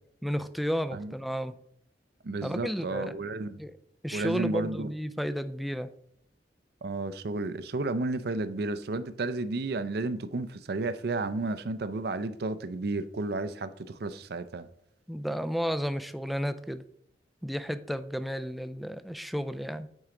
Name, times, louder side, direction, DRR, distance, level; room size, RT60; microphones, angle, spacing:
voice 1, 0.2-1.5 2.4-3.1 3.6-3.7 4.0-5.9 15.1-16.8 17.4-19.9, equal, ahead, 0.4 m, -32 dB
voice 2, 2.2-3.6 4.1-4.9 6.8-14.7, right 2 dB, 65° right, 0.5 m, -32 dB
8.9 x 4.7 x 3.8 m
head